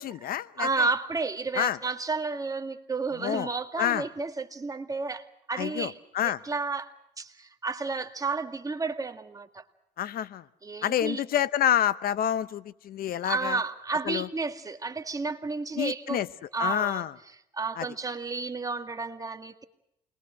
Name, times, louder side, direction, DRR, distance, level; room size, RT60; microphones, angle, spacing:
voice 1, 0.0-0.7 1.6-1.8 3.2-3.5 3.8-4.0 5.6-6.4 10.0-10.4 10.8-13.6 14.1-14.3 15.8-16.3 16.6-17.1 17.8-17.9, left 11 dB, 60° left, 16 dB, 0.8 m, -28 dB
voice 2, 0.6-5.9 6.2-9.6 10.6-11.2 13.2-16.2 16.5-17.1 17.5-19.6, right 4 dB, 20° right, 7 dB, 2.0 m, -31 dB
28.5 x 21.5 x 6.4 m, 0.82 s
cardioid pair, 110°, 17 cm